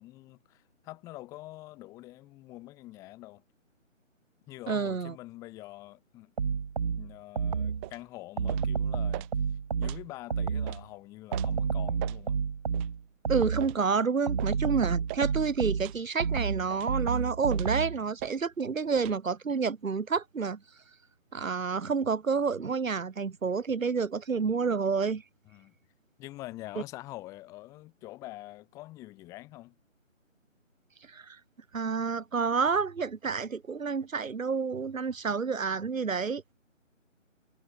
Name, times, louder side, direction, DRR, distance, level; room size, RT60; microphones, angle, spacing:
voice 1, 0.0-3.4 4.5-6.3 7.0-12.4 25.4-25.7 26.2-29.8, left 18 dB, 10° left, 8.0 m, -45 dB
voice 2, 4.7-5.1 13.3-20.6 21.3-25.2 31.1-31.4 31.7-36.5, right 5 dB, 85° right, 1.4 m, -29 dB
sound 1, 6.4-7.9 8.4-10.8 11.3-13.8 14.3-18.0, right 6 dB, 30° right, 2.8 m, -30 dB
sound 2, 7.8-8.0 8.5-8.7 9.1-9.3 9.8-10.0 10.7-10.8 11.3-11.5 12.0-12.2 12.7-12.9 13.6-13.8 14.4-14.6 15.1-15.3 15.8-16.0 16.7-17.0 17.5-17.8 18.2-18.4 19.0-19.2, right 31 dB, 10° right, 3.2 m, -41 dB
figure-of-eight pair, 175°, 39 cm